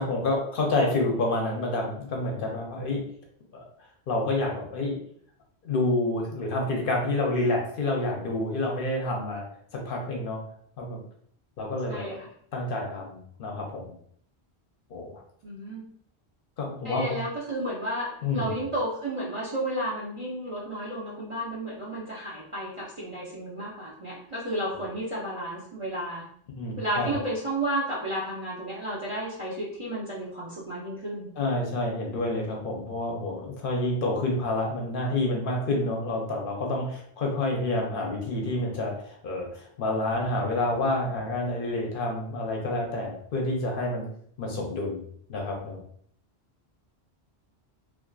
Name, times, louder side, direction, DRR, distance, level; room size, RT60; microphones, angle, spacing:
voice 1, 0.0-3.0 3.5-3.6 4.1-5.0 5.6-9.4 9.7-10.4 10.8-11.0 11.6-12.2 12.5-13.9 14.9-15.1 16.6-17.2 18.2-18.6 26.6-27.2 31.4-44.1 44.4-45.0 45.3-45.8, left 2 dB, 60° left, 0 dB, 0.7 m, -28 dB
voice 2, 11.9-12.3 15.4-15.8 16.8-26.3 26.8-31.3, right 1 dB, 45° right, -5 dB, 0.4 m, -32 dB
2.4 x 2.3 x 2.2 m, 0.64 s
omnidirectional pair, 1.1 m